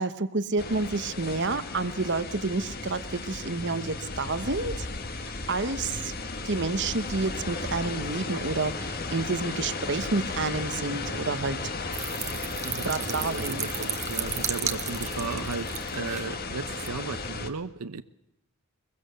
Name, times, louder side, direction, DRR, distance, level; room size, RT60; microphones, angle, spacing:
voice 1, 0.0-4.9 5.2-6.1 6.4-11.6 12.8-13.7, right 3 dB, 50° right, 12 dB, 1.1 m, -29 dB
sound 1, 0.6-17.5, left 3 dB, 45° left, 1.7 m, -35 dB
sound 2, 11.9-16.3 16.7-16.9, right 9 dB, 30° right, 1.2 m, -34 dB
voice 2, 12.6-18.0, right 4 dB, 85° right, 11 dB, 0.8 m, -36 dB
22.5 x 22.0 x 6.9 m, 0.83 s
head